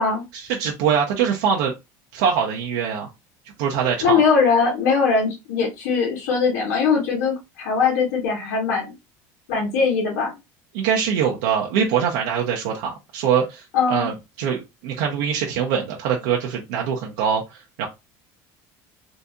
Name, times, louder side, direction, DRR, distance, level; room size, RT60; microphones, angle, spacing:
voice 1, 0.3-1.7 2.1-3.1 3.6-4.2 10.7-17.9, right 7 dB, 85° right, -1 dB, 0.7 m, -23 dB
voice 2, 4.0-8.9 9.5-10.3 13.7-14.1, left 5 dB, 85° left, -2 dB, 1.4 m, -20 dB
3.9 x 2.6 x 2.3 m, 0.23 s
supercardioid pair, 110°, 9 cm